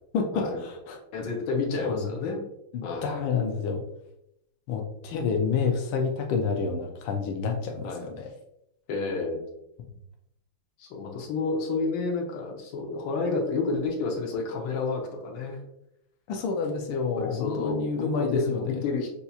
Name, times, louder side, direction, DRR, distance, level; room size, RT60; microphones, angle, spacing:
voice 1, 0.1-1.0 1.8-2.0 2.7-3.8 4.7-8.3 16.3-18.7, left 5 dB, 85° left, 2 dB, 1.5 m, -29 dB
voice 2, 1.1-2.4 2.8-3.2 5.1-5.2 7.8-8.0 8.9-9.4 10.8-15.6 17.2-19.2, left 4 dB, 65° left, 0 dB, 1.5 m, -30 dB
6.6 x 2.8 x 2.3 m, 0.82 s
omnidirectional pair, 2.3 m